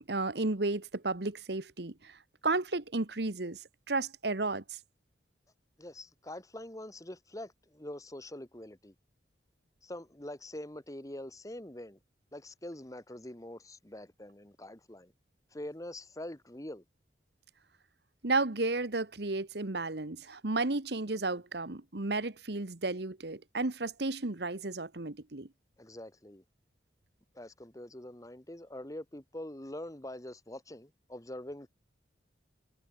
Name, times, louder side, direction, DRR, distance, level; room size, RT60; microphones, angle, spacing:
voice 1, 0.0-2.2 2.4-3.6 3.9-4.8 18.2-25.5, right 3 dB, 65° right, 1.4 m, -33 dB
voice 2, 5.8-8.9 9.8-12.0 12.3-15.1 15.5-16.8 25.8-26.4 27.3-31.7, left 1 dB, 20° left, 1.7 m, -44 dB
head